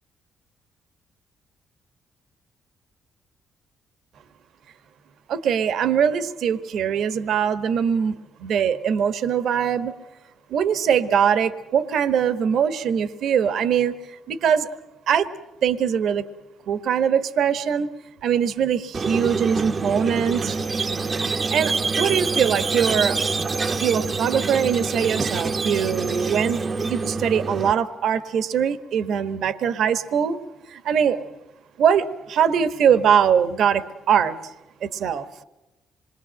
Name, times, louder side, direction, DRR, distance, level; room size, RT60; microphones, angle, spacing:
voice 1, 5.3-9.9 10.5-14.7 15.1-15.3 15.6-16.2 16.7-17.9 18.2-20.6 21.5-23.2 23.8-26.6 26.9-30.4 30.7-31.2 31.8-34.4 34.8-35.3, right 8 dB, 70° right, 12 dB, 1.3 m, -22 dB
Squeak, 18.9-27.7, right 4 dB, 35° right, 0.8 m, -26 dB
27.0 x 22.5 x 7.6 m, 0.98 s
cardioid pair, 90°, 0 cm